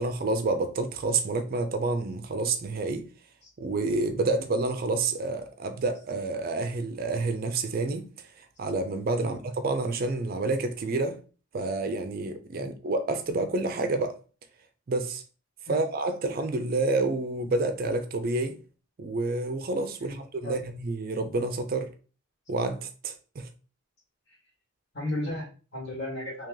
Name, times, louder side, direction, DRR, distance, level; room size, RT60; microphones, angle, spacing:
voice 1, 0.0-3.1 3.6-11.2 11.5-14.2 14.9-15.2 15.7-18.6 19.0-21.9 22.5-23.5, right 3 dB, 45° right, 0.4 m, -29 dB
voice 2, 24.9-26.5, left 1 dB, 55° left, 1.9 m, -35 dB
2.9 x 2.8 x 3.7 m
head